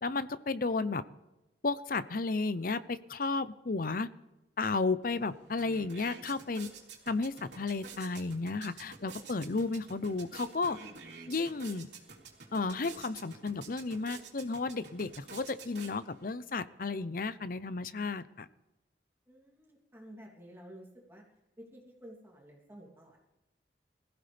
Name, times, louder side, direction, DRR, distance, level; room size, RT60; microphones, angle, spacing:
voice 1, 0.0-1.0 1.6-4.1 4.6-6.7 7.1-10.8 11.3-11.9 12.5-18.5, left 3 dB, 50° left, 14 dB, 0.7 m, -33 dB
sound 1, 5.0-5.1 5.4-16.3, right 5 dB, 75° right, 3.4 m, -50 dB
voice 2, 19.3-21.2 21.6-23.2, equal, 15° right, -2 dB, 3.0 m, -52 dB
22.0 x 15.5 x 3.4 m, 1.0 s
head